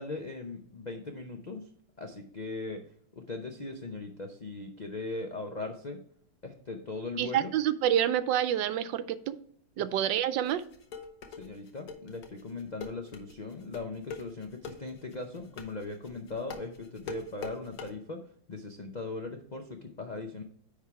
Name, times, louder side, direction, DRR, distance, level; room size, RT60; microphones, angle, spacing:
voice 1, 0.0-1.6 2.0-2.8 3.1-6.0 6.4-7.5 9.8-9.9 11.4-18.2 18.5-20.4, left 3 dB, 80° left, 4 dB, 0.4 m, -39 dB
voice 2, 7.2-9.4 9.8-10.6, right 11 dB, 85° right, 13 dB, 1.3 m, -28 dB
sound 1, 10.4-17.9, left 5 dB, 60° left, 1.3 m, -42 dB
9.6 x 3.6 x 4.6 m, 0.63 s
omnidirectional pair, 1.9 m